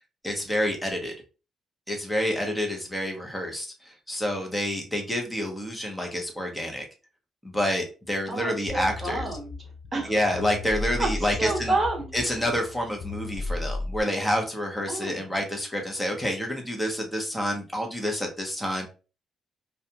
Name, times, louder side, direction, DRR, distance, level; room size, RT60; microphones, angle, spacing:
voice 1, 0.2-1.1 1.9-6.8 7.4-9.3 10.1-11.7 12.1-18.9, equal, 5° left, 0.8 m, -28 dB
voice 2, 8.3-10.1 11.0-12.1 12.4-12.5 14.9-15.3, right 2 dB, 35° right, 1.1 m, -30 dB
sound 1, 8.7-14.0, left 3 dB, 55° left, 0.4 m, -35 dB
2.4 x 2.2 x 2.8 m
cardioid pair, 90°, 0 cm